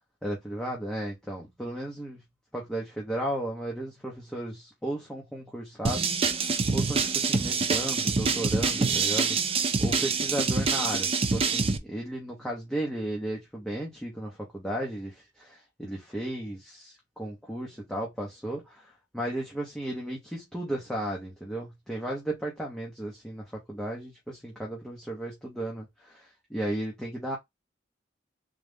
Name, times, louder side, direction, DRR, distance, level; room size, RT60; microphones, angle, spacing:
voice 1, 0.2-2.2 2.5-27.4, right 1 dB, 5° left, 1.0 m, -35 dB
sound 1, 5.8-11.8, right 4 dB, 30° right, 0.4 m, -26 dB
3.9 x 2.5 x 3.5 m
head